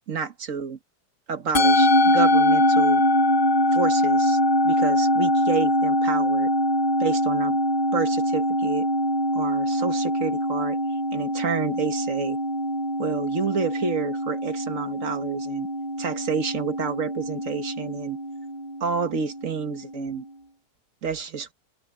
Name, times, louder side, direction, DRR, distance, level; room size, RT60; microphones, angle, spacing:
voice 1, 0.1-0.8 1.3-3.0 3.7-4.4 4.6-6.5 7.0-7.6 7.9-8.9 9.3-10.8 11.1-12.4 13.0-15.7 16.0-18.2 18.8-20.3 21.0-21.5, right 6 dB, 50° right, 1.7 m, -29 dB
Musical instrument, 1.5-20.0, left 1 dB, 35° left, 1.4 m, -23 dB
omnidirectional pair, 1.8 m